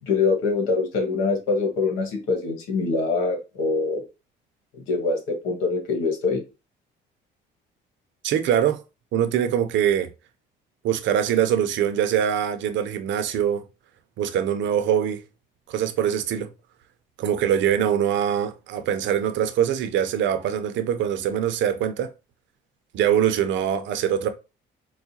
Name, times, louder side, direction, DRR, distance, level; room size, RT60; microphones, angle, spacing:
voice 1, 0.1-4.0 4.9-6.4, left 4 dB, 85° left, 1.5 m, -24 dB
voice 2, 8.2-8.8 9.1-10.1 10.8-13.6 14.2-15.2 15.7-16.5 17.2-22.1 22.9-24.3, right 9 dB, 70° right, 0.7 m, -23 dB
4.7 x 2.2 x 2.8 m
cardioid pair, 110°, 20 cm